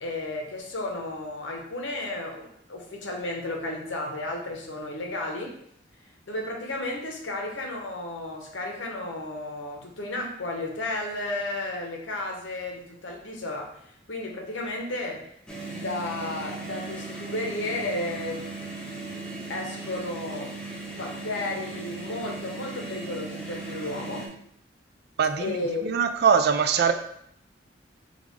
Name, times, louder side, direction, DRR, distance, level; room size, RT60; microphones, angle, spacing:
voice 1, 0.0-5.5 6.3-13.7 14.1-15.2 15.7-18.4 19.5-20.5 20.9-24.3 25.4-26.1, left 2 dB, 80° left, 1 dB, 0.9 m, -33 dB
sound 1, 15.5-24.3, right 3 dB, 5° left, 0.7 m, -37 dB
voice 2, 25.2-25.6 25.8-26.9, right 6 dB, 60° right, 8 dB, 0.4 m, -22 dB
5.2 x 2.4 x 3.2 m, 0.69 s
head